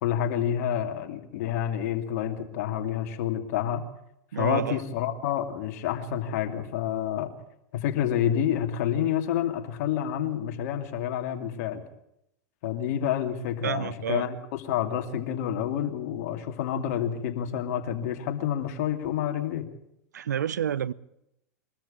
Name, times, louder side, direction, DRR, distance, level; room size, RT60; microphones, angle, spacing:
voice 1, 0.0-3.8 4.3-7.3 7.7-11.8 12.6-19.7, left 10 dB, 65° left, 2.7 m, -28 dB
voice 2, 4.3-4.8 13.6-14.3 20.1-20.9, right 9 dB, 90° right, 0.7 m, -29 dB
23.0 x 13.5 x 8.9 m
hypercardioid pair, 105°, 9 cm